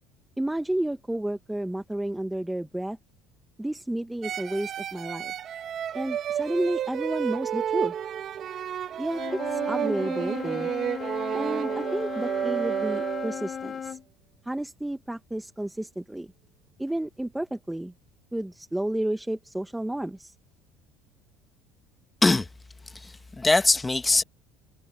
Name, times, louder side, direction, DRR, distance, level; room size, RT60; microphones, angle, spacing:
voice 1, 0.4-3.0 3.6-5.3 5.9-7.9 9.0-10.7 11.3-14.0 14.4-16.3 16.8-17.9 18.3-20.3, right 1 dB, 5° right, 1.0 m, -31 dB
sound 1, 4.2-13.6, right 9 dB, 40° right, 1.7 m, -31 dB
Wind instrument woodwind instrument, 9.1-14.0, left 7 dB, 30° left, 1.5 m, -36 dB
voice 2, 22.9-24.2, left 3 dB, 10° left, 1.3 m, -22 dB
cardioid pair, 135°, 0 cm